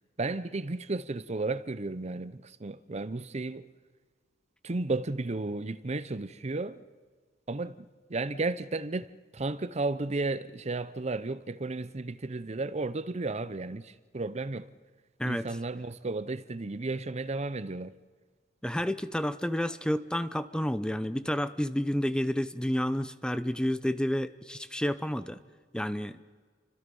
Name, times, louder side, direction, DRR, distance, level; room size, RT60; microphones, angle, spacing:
voice 1, 0.2-3.7 4.6-6.8 7.5-7.8 8.1-9.1 9.3-14.7 15.2-17.9, right 3 dB, 35° right, 0.7 m, -33 dB
voice 2, 18.6-25.4 25.7-26.2, equal, 5° left, 0.7 m, -30 dB
30.0 x 25.5 x 5.5 m
head